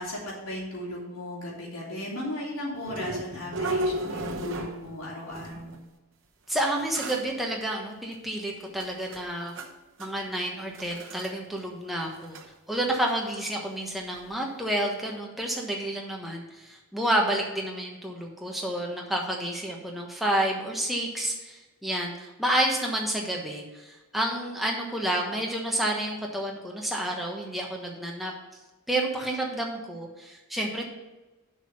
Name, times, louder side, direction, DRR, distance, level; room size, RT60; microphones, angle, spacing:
voice 1, 0.0-5.7, left 1 dB, 80° left, -5 dB, 3.1 m, -36 dB
sound 1, 2.8-5.0 5.3-5.8 6.6-6.7 6.9-7.3 8.1-8.2 8.7-9.7 10.0-10.3 10.7-11.3 11.6-11.7 12.0-12.5 14.1-14.2 14.7-14.8, right 1 dB, 60° right, 1.0 m, -34 dB
voice 2, 6.5-9.5 10.0-12.4 12.7-28.3 28.9-30.9, right 1 dB, ahead, -1 dB, 1.2 m, -30 dB
7.3 x 5.4 x 7.0 m, 1.1 s
head